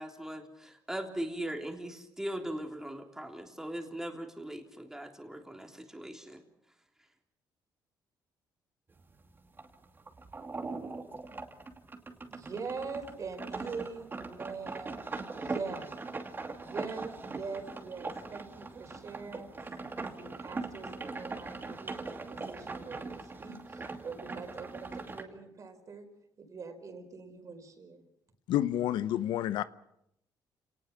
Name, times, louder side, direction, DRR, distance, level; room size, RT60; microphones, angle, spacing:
voice 1, 0.0-6.4, right 1 dB, 5° right, 3.4 m, -39 dB
sound 1, 8.9-25.2, right 3 dB, 25° right, 2.6 m, -41 dB
voice 2, 12.3-15.0 15.3-15.9 16.6-26.1 26.4-28.0, right 4 dB, 45° right, 4.5 m, -43 dB
voice 3, 28.5-29.6, left 12 dB, 85° left, 0.9 m, -29 dB
29.5 x 19.0 x 6.0 m
cardioid pair, 100°, 8 cm